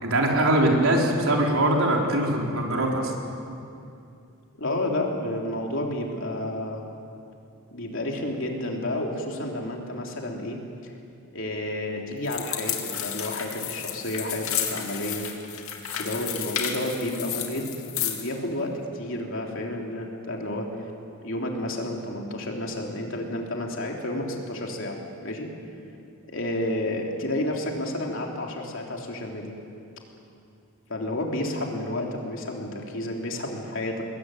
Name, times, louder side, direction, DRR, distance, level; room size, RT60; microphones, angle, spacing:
voice 1, 0.0-3.1, right 1 dB, 70° right, 0 dB, 4.0 m, -22 dB
voice 2, 4.6-6.8 7.7-10.9 11.3-15.2 15.9-20.7 21.2-25.5 26.3-29.5 30.9-34.0, left 1 dB, 60° left, 0 dB, 3.6 m, -31 dB
sound 1, 12.2-18.3, left 9 dB, 75° left, 2.7 m, -32 dB
22.5 x 21.0 x 9.4 m, 2.5 s
head